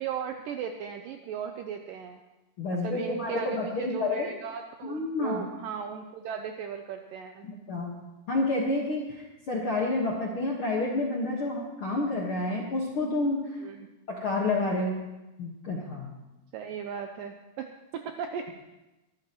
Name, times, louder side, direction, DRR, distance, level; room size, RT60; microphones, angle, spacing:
voice 1, 0.0-2.2 2.7-7.5 13.6-13.9 16.5-18.5, right 7 dB, 85° right, 5 dB, 2.0 m, -37 dB
voice 2, 2.6-4.3 4.8-5.4 7.7-7.9 8.3-13.6 14.1-15.0 15.4-16.1, left 2 dB, 60° left, -2 dB, 1.4 m, -29 dB
22.5 x 12.5 x 3.0 m, 1.0 s
omnidirectional pair, 4.6 m